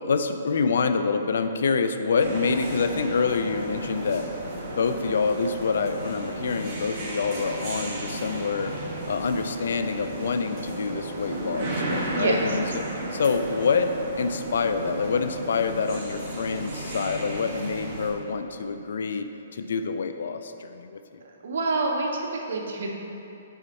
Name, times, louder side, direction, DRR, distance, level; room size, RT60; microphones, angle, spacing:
voice 1, 0.0-4.3 4.7-8.8 9.1-21.2, left 5 dB, 70° left, 8 dB, 0.4 m, -27 dB
sound 1, 2.2-18.1, right 2 dB, 35° right, 1.2 m, -34 dB
voice 2, 12.2-12.6 21.4-22.9, right 3 dB, 70° right, 0 dB, 0.9 m, -27 dB
5.7 x 4.3 x 4.0 m, 2.8 s
hypercardioid pair, 155°, 0 cm